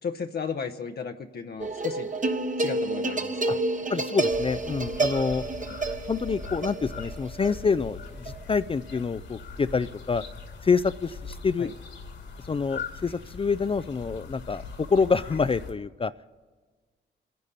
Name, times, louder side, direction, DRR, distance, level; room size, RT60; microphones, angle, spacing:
voice 1, 0.0-2.1 2.6-3.6 11.6-11.7, left 6 dB, 55° left, 5 dB, 0.8 m, -35 dB
sound 1, 1.6-9.0, right 2 dB, 40° right, 1.1 m, -30 dB
voice 2, 3.9-5.4 6.1-10.2 10.6-11.7 12.5-16.3, left 5 dB, 30° left, 13 dB, 0.4 m, -27 dB
sound 2, 4.3-15.7, left 5 dB, 75° left, 2.4 m, -41 dB
25.0 x 10.5 x 4.1 m, 1.4 s
cardioid pair, 60°, 20 cm